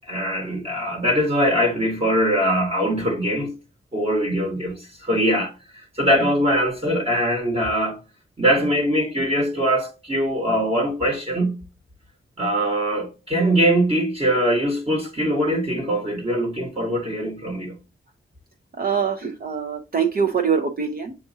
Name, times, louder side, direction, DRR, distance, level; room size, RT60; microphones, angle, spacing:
voice 1, 0.1-3.5 3.9-8.0 8.4-11.5 12.4-17.7, equal, 25° right, 1.3 m, -22 dB
voice 2, 18.8-21.1, right 6 dB, 45° right, 0.7 m, -23 dB
7.1 x 2.6 x 2.7 m
wide cardioid pair, 120°, 21 cm